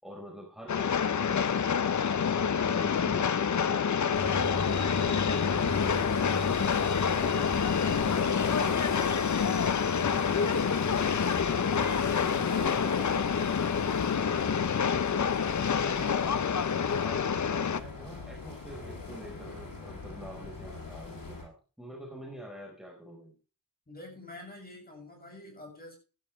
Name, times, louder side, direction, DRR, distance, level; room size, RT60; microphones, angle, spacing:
voice 1, 0.0-2.0 2.6-3.9 4.1-9.5 9.9-13.1 13.8-16.4 16.9-23.3, equal, ahead, 4.7 m, -46 dB
Train, 0.7-17.8, left 7 dB, 60° left, 0.8 m, -27 dB
sound 1, 4.1-21.4, left 3 dB, 90° left, 7.4 m, -37 dB
voice 2, 23.9-26.0, left 2 dB, 30° left, 7.2 m, -46 dB
16.5 x 12.0 x 3.3 m
wide cardioid pair, 130°, 33 cm